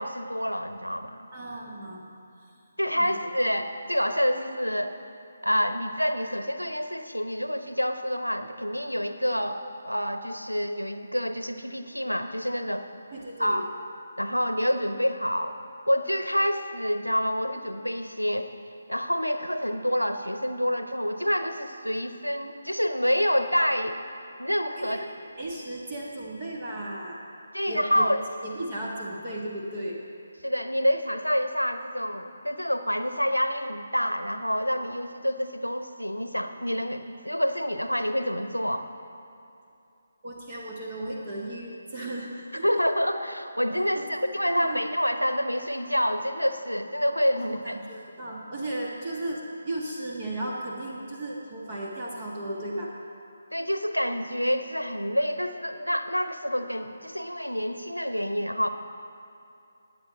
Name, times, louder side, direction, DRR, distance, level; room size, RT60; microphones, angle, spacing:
voice 1, 0.0-1.3 2.8-4.9 5.4-12.8 13.4-13.7 14.2-15.6 15.9-18.5 18.9-24.0 24.4-25.0 27.5-28.2 30.4-38.9 42.6-47.8 53.5-58.7, equal, 90° left, 8 dB, 0.9 m, -27 dB
voice 2, 1.3-2.2 2.5-2.6 3.0-3.3 13.1-13.6 24.8-25.0 25.4-27.2 27.7-28.1 28.4-30.0 40.2-42.7 43.9-44.8 47.4-52.9, right 1 dB, 30° right, -3 dB, 1.6 m, -35 dB
20.0 x 8.6 x 4.2 m, 2.6 s
figure-of-eight pair, 150°, 0 cm